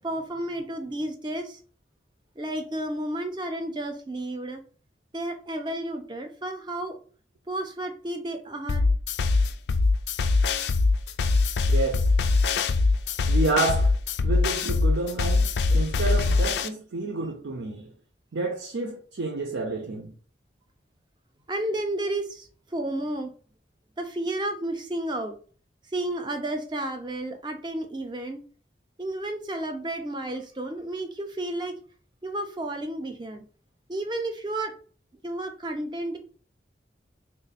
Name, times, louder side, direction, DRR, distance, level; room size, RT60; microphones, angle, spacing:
voice 1, 0.0-1.6 2.4-4.6 5.1-7.0 7.5-8.8 21.5-23.3 24.0-25.4 25.9-28.4 29.0-31.8 32.2-33.4 33.9-34.7 35.2-36.2, right 1 dB, 25° right, 0.5 m, -32 dB
sound 1, 8.7-16.7, left 3 dB, 65° left, 0.3 m, -22 dB
voice 2, 11.7-12.1 13.3-13.9 14.2-17.9 18.3-20.1, right 3 dB, 85° right, 0.6 m, -29 dB
3.2 x 2.1 x 4.0 m
head